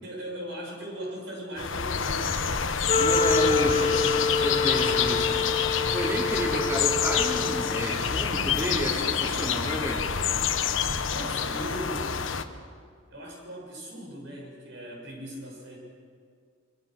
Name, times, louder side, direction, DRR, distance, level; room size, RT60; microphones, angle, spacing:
voice 1, 0.0-2.7 3.4-5.4 11.1-12.3 13.1-15.8, equal, 65° right, 0 dB, 7.0 m, -39 dB
sound 1, 1.6-12.4, left 7 dB, 80° left, 1.1 m, -27 dB
Wind instrument woodwind instrument, 2.9-8.0, left 4 dB, 35° left, 1.3 m, -27 dB
voice 2, 2.9-4.0 4.4-5.4 5.9-10.1, equal, 15° right, -3 dB, 3.0 m, -31 dB
26.5 x 23.0 x 6.5 m, 2.1 s
head